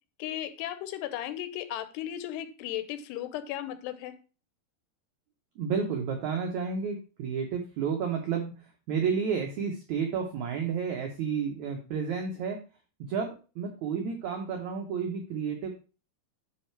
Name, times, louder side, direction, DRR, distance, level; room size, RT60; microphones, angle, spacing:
voice 1, 0.2-4.1, left 12 dB, 85° left, 11 dB, 2.8 m, -35 dB
voice 2, 5.5-12.6 13.0-15.7, right 6 dB, 85° right, 3 dB, 1.6 m, -31 dB
9.9 x 3.7 x 4.5 m, 0.34 s
omnidirectional pair, 4.7 m